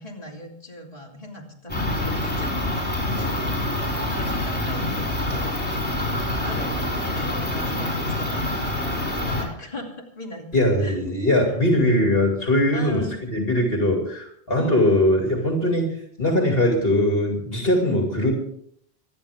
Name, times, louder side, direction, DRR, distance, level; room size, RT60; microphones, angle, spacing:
voice 1, 0.0-5.8 6.2-8.7 9.1-11.0 11.5-11.6 12.7-13.2 14.5-15.1, equal, 35° left, -2 dB, 3.1 m, -39 dB
sound 1, 1.7-9.4, left 1 dB, 10° left, 5.2 m, -26 dB
voice 2, 10.5-13.0 13.3-18.3, left 1 dB, 60° left, 1 dB, 2.9 m, -21 dB
26.0 x 10.5 x 3.5 m, 0.67 s
omnidirectional pair, 1.1 m